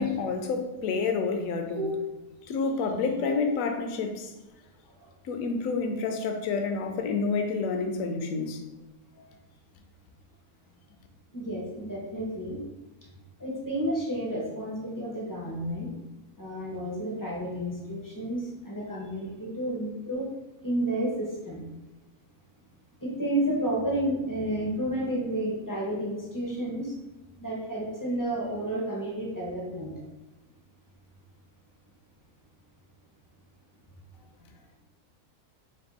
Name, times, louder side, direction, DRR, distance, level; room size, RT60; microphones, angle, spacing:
voice 1, 0.0-1.8 2.5-4.3 5.3-8.6, left 4 dB, 70° left, 5 dB, 0.9 m, -29 dB
voice 2, 11.3-12.6 13.4-15.9 16.4-20.2 20.6-21.6 23.0-26.9 27.4-29.9, right 1 dB, 35° left, -4 dB, 0.3 m, -31 dB
3.4 x 2.6 x 3.9 m, 1.1 s
omnidirectional pair, 1.7 m